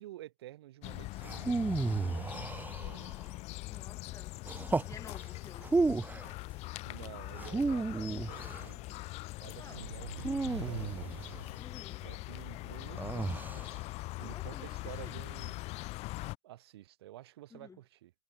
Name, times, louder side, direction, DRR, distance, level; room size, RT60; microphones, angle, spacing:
voice 1, 0.0-3.1 5.8-5.9 6.9-9.0 9.4-11.1 12.0-13.6 14.2-15.6 16.4-18.1, right 15 dB, 70° right, 5.1 m, -51 dB
sound 1, 0.8-16.4, left 21 dB, 50° left, 5.2 m, -42 dB
sound 2, 1.2-3.2 4.5-5.0 5.6-6.3 7.3-8.7 10.2-11.4 13.0-13.7, right 3 dB, 15° right, 1.8 m, -33 dB
voice 2, 3.7-4.4 4.8-5.7 9.6-9.8 11.6-12.0 14.2-14.8 15.0-15.2 17.5-17.8, left 5 dB, 25° left, 6.6 m, -52 dB
sound 3, 9.6-12.3, right 5 dB, 90° right, 0.8 m, -44 dB
figure-of-eight pair, 75°, 14 cm